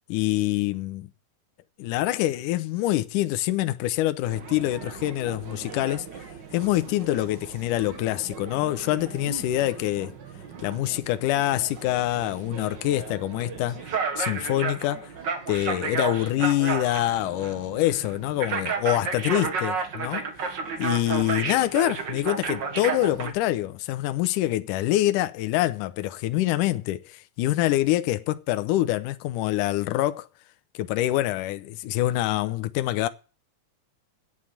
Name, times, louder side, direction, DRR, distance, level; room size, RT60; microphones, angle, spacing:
voice 1, 0.1-1.1 1.8-6.3 6.5-10.1 10.6-15.1 15.5-20.3 20.8-30.3 30.8-33.1, left 15 dB, 75° left, 2.1 m, -25 dB
sound 1, 4.3-23.3, right 5 dB, 50° right, 1.3 m, -33 dB
9.5 x 8.5 x 8.6 m
omnidirectional pair, 4.2 m